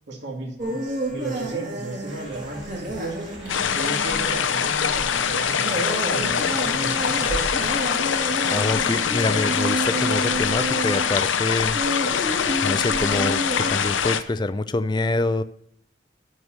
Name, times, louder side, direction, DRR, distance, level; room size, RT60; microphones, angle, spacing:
voice 1, 0.1-3.2 3.7-7.7, right 3 dB, 70° right, 0 dB, 2.4 m, -34 dB
sound 1, 0.6-13.8, right 1 dB, 45° right, 3.0 m, -30 dB
sound 2, 2.1-7.9, right 1 dB, 25° right, 2.7 m, -44 dB
sound 3, 3.5-14.2, left 7 dB, 90° left, 0.7 m, -24 dB
voice 2, 8.5-11.8 12.6-15.4, left 2 dB, 25° left, 13 dB, 0.4 m, -26 dB
12.5 x 4.8 x 6.5 m, 0.67 s
head